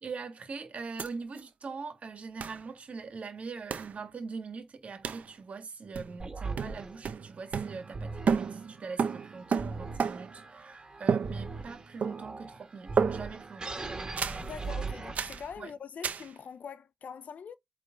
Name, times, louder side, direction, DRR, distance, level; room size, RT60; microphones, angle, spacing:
voice 1, 0.0-13.8 15.6-15.7, right 4 dB, 55° right, 1.9 m, -42 dB
sound 1, 1.0-1.1 1.4-1.5 2.4-2.6 3.7-4.0 5.0-5.3 5.9-6.3 6.6-8.0 8.3-10.4 11.1-11.7 12.0-12.5 13.0-13.5 14.2-14.5 15.1-15.5 16.0-16.3, right 6 dB, 70° right, 0.8 m, -32 dB
sound 2, 6.2-15.6, right 3 dB, 30° right, 2.4 m, -40 dB
voice 2, 14.4-17.6, left 6 dB, 75° left, 0.6 m, -43 dB
8.5 x 3.7 x 3.9 m
wide cardioid pair, 100°, 3 cm